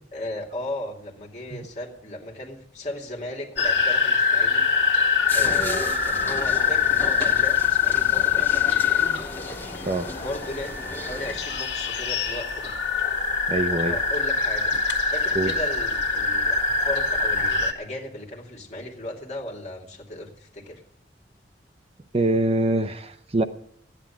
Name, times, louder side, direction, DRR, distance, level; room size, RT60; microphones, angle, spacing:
voice 1, 0.1-4.7 5.3-9.1 10.2-12.7 13.7-14.7 15.1-20.8, left 1 dB, 40° left, 2.6 m, -36 dB
sound 1, 3.6-17.7, left 5 dB, 75° left, 1.7 m, -24 dB
sound 2, 5.3-11.4, left 2 dB, 15° left, 1.7 m, -35 dB
voice 2, 13.5-14.0 15.3-15.5 22.1-23.4, right 2 dB, 35° right, 0.6 m, -24 dB
14.0 x 9.9 x 7.2 m
head